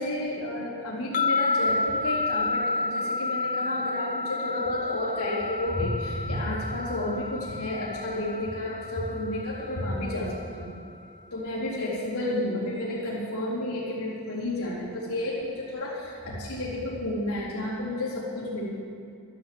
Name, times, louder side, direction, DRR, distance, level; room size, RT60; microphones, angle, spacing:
voice 1, 0.0-10.7 11.3-18.6, left 1 dB, 85° left, -8 dB, 4.0 m, -31 dB
sound 1, 1.1-10.4, left 3 dB, 35° left, 0.5 m, -30 dB
13.0 x 11.5 x 7.8 m, 2.5 s
head